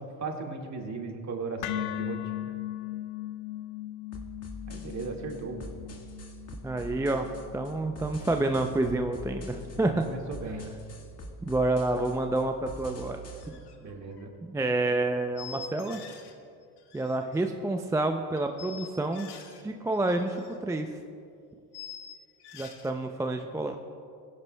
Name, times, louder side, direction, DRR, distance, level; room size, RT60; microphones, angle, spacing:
voice 1, 0.0-2.5 4.7-5.6 9.7-10.6 13.8-14.3, right 3 dB, 40° right, 2 dB, 1.9 m, -37 dB
sound 1, 1.6-9.7, left 15 dB, 80° left, 0.6 m, -39 dB
sound 2, 4.1-13.5, equal, 35° left, 1.7 m, -44 dB
voice 2, 6.6-7.3 7.5-10.0 11.4-13.6 14.5-16.0 16.9-19.3 19.6-20.9 22.5-23.8, right 2 dB, 5° right, 5 dB, 0.4 m, -29 dB
sound 3, 13.4-13.8 14.0-14.2 15.4-16.4 16.6-17.5 18.4-19.6 19.9-20.6 20.8-20.9 21.7-22.9, left 8 dB, 60° left, 1.5 m, -46 dB
17.5 x 10.5 x 2.2 m, 2.4 s
supercardioid pair, 90°, 45 cm